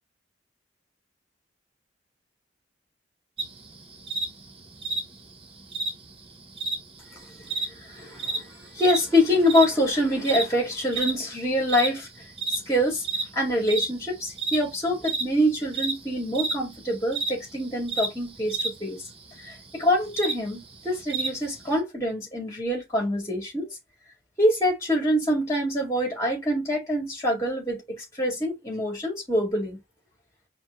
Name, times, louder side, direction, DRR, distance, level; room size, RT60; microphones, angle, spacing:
sound 1, 3.4-21.8, right 3 dB, 30° right, 0.7 m, -33 dB
voice 1, 7.9-12.1 12.5-13.0 13.3-19.0 19.4-23.7 24.4-29.8, left 1 dB, 15° left, 2.1 m, -25 dB
4.7 x 2.4 x 3.6 m
head